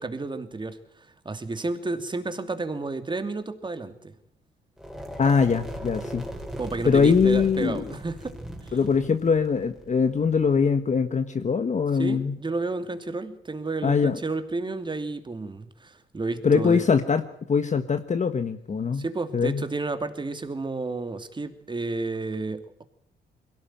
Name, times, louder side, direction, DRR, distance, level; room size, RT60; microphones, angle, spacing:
voice 1, 0.0-4.1 6.6-8.4 8.6-8.8 12.0-16.9 18.9-22.8, right 3 dB, 25° right, 9 dB, 2.7 m, -31 dB
sound 1, 4.8-10.7, equal, ahead, 4.6 m, -39 dB
voice 2, 5.2-6.2 6.8-7.9 8.7-12.4 13.8-14.2 16.4-17.2 17.5-19.0 19.3-19.6, left 5 dB, 35° left, 8 dB, 1.5 m, -22 dB
22.0 x 17.0 x 9.1 m, 0.68 s
cardioid pair, 90°, 20 cm